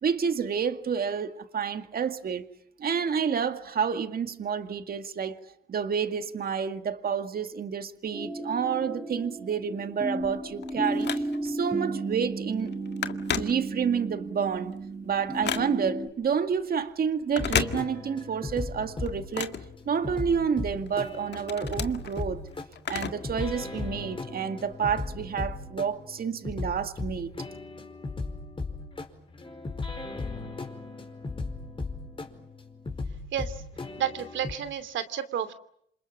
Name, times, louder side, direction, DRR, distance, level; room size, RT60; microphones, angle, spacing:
voice 1, 0.0-2.5 2.8-5.4 5.7-12.7 13.3-14.8 15.0-19.6 19.9-22.4 22.9-27.3, right 7 dB, 50° right, 2.1 m, -29 dB
sound 1, 8.1-16.1, right 1 dB, 10° right, 3.9 m, -34 dB
Telephone, 10.2-11.6 12.1-12.3 12.6-14.1 14.5-16.0 17.2-18.3 18.6-20.4 20.9-23.4 23.7-23.8 24.6-24.7, left 8 dB, 60° left, 1.8 m, -34 dB
sound 2, 17.4-34.5, left 3 dB, 25° left, 5.0 m, -37 dB
voice 2, 33.3-33.6 34.0-35.5, right 9 dB, 70° right, 2.9 m, -31 dB
28.5 x 27.0 x 7.4 m
cardioid pair, 90°, 20 cm